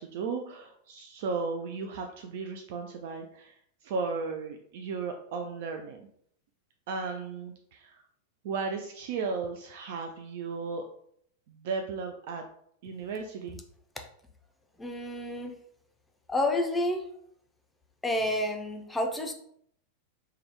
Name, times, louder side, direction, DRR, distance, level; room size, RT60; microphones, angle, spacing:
voice 1, 0.0-6.1 6.9-8.0 8.4-10.9 11.5-12.4 12.8-13.6, right 4 dB, 50° right, 4 dB, 0.3 m, -35 dB
voice 2, 14.8-15.6 16.3-17.1 18.0-19.3, left 1 dB, 10° left, 4 dB, 0.5 m, -29 dB
3.4 x 2.2 x 3.4 m, 0.68 s
figure-of-eight pair, 90°, 0 cm